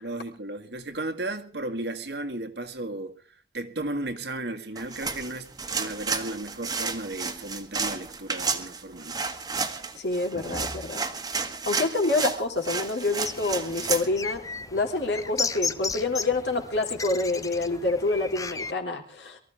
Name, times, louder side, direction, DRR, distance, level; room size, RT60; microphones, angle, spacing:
voice 1, 0.0-3.2 3.5-9.2, right 2 dB, 70° right, 1.9 m, -34 dB
sound 1, 4.8-14.1, right 4 dB, 20° right, 1.5 m, -32 dB
voice 2, 9.9-11.0 11.7-14.4 14.7-19.4, left 2 dB, 70° left, 3.6 m, -27 dB
sound 2, 13.2-18.7, left 4 dB, 20° left, 0.8 m, -34 dB
23.5 x 14.5 x 3.5 m
head